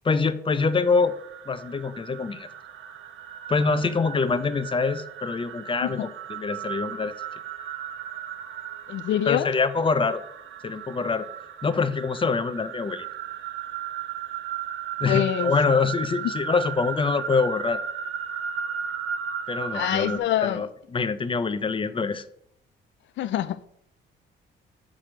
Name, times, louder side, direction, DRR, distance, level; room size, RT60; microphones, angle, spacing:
voice 1, 0.0-1.1 1.5-2.5 3.5-6.0 6.3-7.1 9.3-10.2 10.6-11.3 11.6-13.1 15.0-17.8 19.5-22.2, left 4 dB, 25° left, 0.6 m, -25 dB
sound 1, 0.6-20.2, right 8 dB, 80° right, 0.7 m, -35 dB
voice 2, 8.9-9.5 15.0-15.5 16.2-16.3 19.7-20.6 23.2-23.6, left 12 dB, 70° left, 0.5 m, -25 dB
5.8 x 4.9 x 6.2 m
cardioid pair, 90°, 20 cm